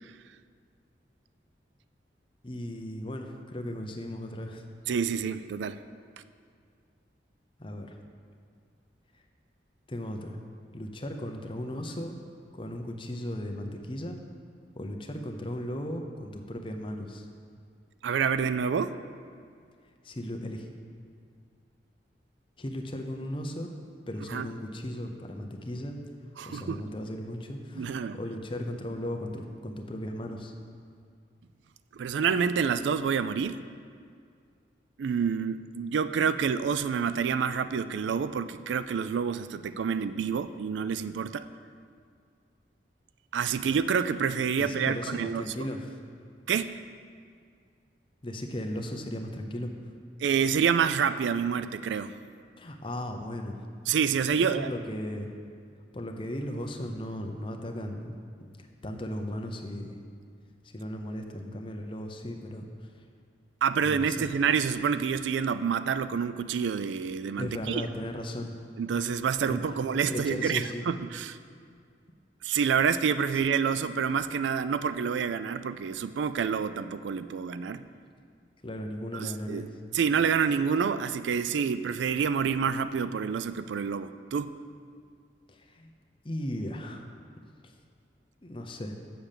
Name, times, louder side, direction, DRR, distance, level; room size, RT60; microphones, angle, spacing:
voice 1, 2.4-4.6 7.6-8.0 9.9-10.4 10.7-12.2 12.5-14.2 14.7-17.3 20.0-20.7 22.6-23.7 24.1-26.0 26.4-30.5 44.6-46.0 48.2-49.7 52.6-53.6 54.4-55.3 55.9-58.1 58.6-60.0 60.7-62.7 63.8-64.4 67.4-68.5 69.5-70.8 73.3-73.4 78.6-79.7 85.5-85.9 86.2-87.1 88.4-88.9, left 1 dB, 30° left, 4 dB, 0.7 m, -36 dB
voice 2, 4.9-5.8 18.0-18.9 24.3-24.5 26.4-26.8 27.7-28.2 31.9-33.6 35.0-41.5 43.3-45.7 46.5-46.8 50.2-52.1 53.9-54.7 63.6-67.9 68.8-71.4 72.4-77.8 79.1-79.7 79.9-84.6, right 6 dB, 85° right, 13 dB, 0.3 m, -28 dB
6.9 x 6.5 x 7.4 m, 2.2 s
head